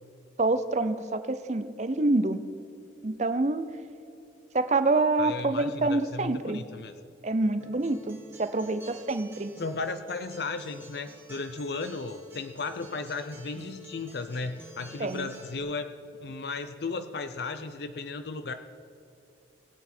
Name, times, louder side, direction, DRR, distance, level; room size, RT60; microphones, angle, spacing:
voice 1, 0.4-2.4 3.0-3.6 4.5-6.6 7.2-9.5 15.0-15.3, right 2 dB, 40° right, 11 dB, 0.6 m, -27 dB
voice 2, 5.2-6.9 9.6-15.9 16.2-18.5, left 3 dB, 60° left, 9 dB, 0.5 m, -35 dB
Acoustic guitar, 7.6-15.6, equal, 10° right, 1.3 m, -49 dB
19.0 x 8.3 x 4.3 m, 2.6 s
head